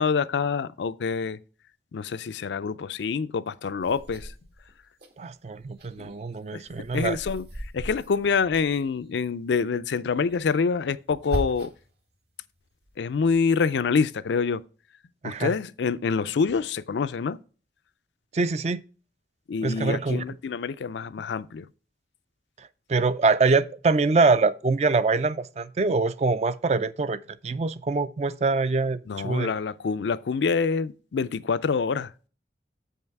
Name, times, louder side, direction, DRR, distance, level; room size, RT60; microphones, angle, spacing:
voice 1, 0.0-1.4 1.9-4.3 6.0-6.1 6.5-6.6 6.9-7.5 7.7-11.7 13.0-14.6 15.2-17.4 19.5-21.7 29.1-32.1, left 5 dB, 80° left, 0.4 m, -26 dB
sound 1, 3.8-5.1 5.5-9.1 10.1-11.9 12.4-13.3, equal, 70° right, 1.6 m, -38 dB
voice 2, 5.2-7.2 15.2-15.5 18.3-18.8 19.6-20.2 22.9-29.5, right 3 dB, 35° right, 0.4 m, -24 dB
7.7 x 5.5 x 4.6 m
head